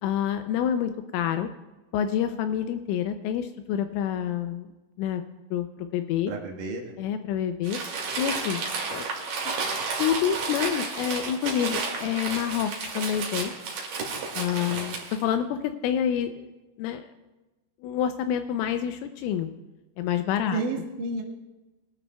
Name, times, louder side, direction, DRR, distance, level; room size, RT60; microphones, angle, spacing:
voice 1, 0.0-1.5 1.9-4.7 5.0-5.2 5.5-6.3 7.0-7.8 8.2-9.0 10.0-13.5 14.4-16.5 16.8-17.1 17.8-19.5 20.0-20.6, left 9 dB, 85° left, 8 dB, 2.9 m, -28 dB
voice 2, 6.3-7.0 14.6-15.0 20.5-21.2, right 3 dB, 75° right, 0 dB, 1.9 m, -32 dB
Crumpling crinkling, 7.6-15.2, right 4 dB, 55° right, 2.9 m, -32 dB
23.0 x 12.5 x 2.2 m, 1.1 s
omnidirectional pair, 6.0 m